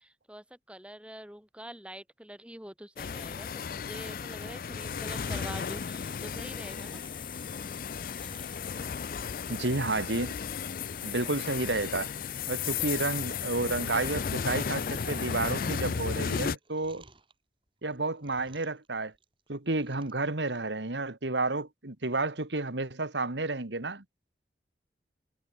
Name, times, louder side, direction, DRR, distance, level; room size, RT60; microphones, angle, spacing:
voice 1, 0.0-7.0, equal, 5° right, 4.4 m, -45 dB
sound 1, 3.0-16.6, left 6 dB, 50° left, 0.4 m, -35 dB
sound 2, 4.8-16.5, left 10 dB, 30° left, 1.4 m, -46 dB
Chewing mastication, 4.8-8.7 9.1-10.2 10.5-10.8 11.1-11.7 12.0-12.1 12.5-12.6 12.8-13.2 13.6-14.7 15.0-17.3 17.8-18.9 19.1-20.2 20.6-20.7, right 3 dB, 30° right, 5.7 m, -56 dB
voice 2, 9.5-10.3 11.0-12.1 12.5-17.0 17.8-19.1 19.5-24.0, right 2 dB, 85° right, 2.2 m, -31 dB
head